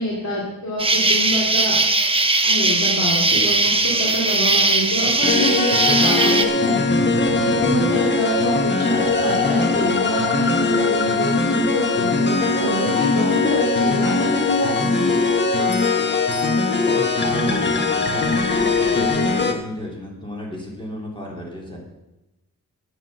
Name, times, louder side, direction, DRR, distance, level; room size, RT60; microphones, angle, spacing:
voice 1, 0.0-1.8 2.4-6.8 7.3-15.1, equal, 50° left, -4 dB, 2.9 m, -26 dB
Insect, 0.8-6.4, right 2 dB, 15° right, 0.9 m, -19 dB
sound 1, 5.2-19.5, left 3 dB, 35° left, 1.3 m, -20 dB
voice 2, 16.4-21.8, left 1 dB, 15° left, -2 dB, 3.3 m, -33 dB
9.8 x 9.2 x 6.4 m, 0.95 s
wide cardioid pair, 125°, 34 cm